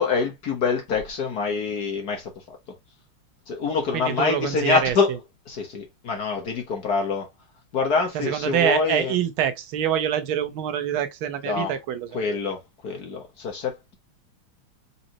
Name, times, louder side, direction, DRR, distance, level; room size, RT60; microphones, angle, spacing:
voice 1, 0.0-2.6 3.5-5.1 5.5-7.3 7.7-9.1 11.4-11.7 12.1-14.0, left 4 dB, 55° left, 1.3 m, -25 dB
voice 2, 3.9-5.0 8.1-12.4, right 10 dB, 75° right, 1.6 m, -25 dB
4.2 x 4.0 x 2.8 m
omnidirectional pair, 2.3 m